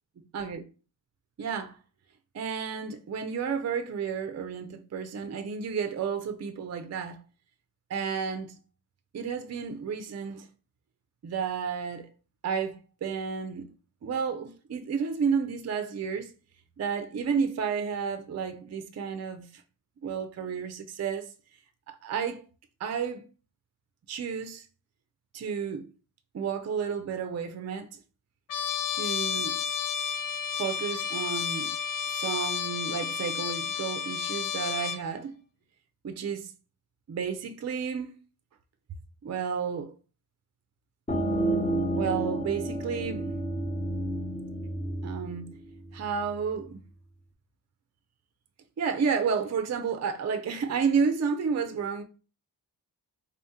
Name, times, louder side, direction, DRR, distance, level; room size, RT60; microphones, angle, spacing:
voice 1, 1.4-1.8 2.3-7.2 7.9-8.5 9.1-10.5 11.2-12.1 12.4-13.7 14.0-16.3 16.8-19.6 20.0-21.3 21.9-22.4 22.8-23.2 24.1-24.7 25.3-25.9 26.3-28.0 28.9-29.6 30.6-31.7 32.1-35.4 36.0-36.5 37.1-38.1 39.2-39.9 41.9-43.4 45.0-45.5 45.9-46.8 48.8-52.0, right 6 dB, 40° right, 0.4 m, -31 dB
Trumpet, 28.5-35.0, left 8 dB, 55° left, 0.5 m, -31 dB
sound 1, 41.1-46.5, right 1 dB, 15° left, 0.7 m, -31 dB
3.7 x 2.7 x 3.5 m
wide cardioid pair, 115°, 41 cm